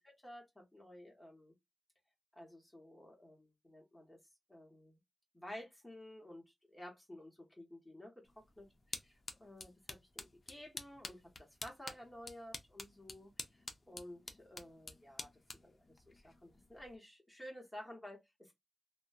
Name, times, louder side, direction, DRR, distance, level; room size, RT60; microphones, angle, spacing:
voice 1, 0.2-1.5 2.3-4.2 4.5-5.0 5.3-6.4 6.7-8.1 8.6-8.7 9.4-15.3 15.6-18.5, left 1 dB, 10° left, 1.0 m, -53 dB
sound 1, 8.2-17.0, left 3 dB, 45° left, 0.5 m, -50 dB
2.5 x 2.1 x 2.5 m
cardioid pair, 70°, 0 cm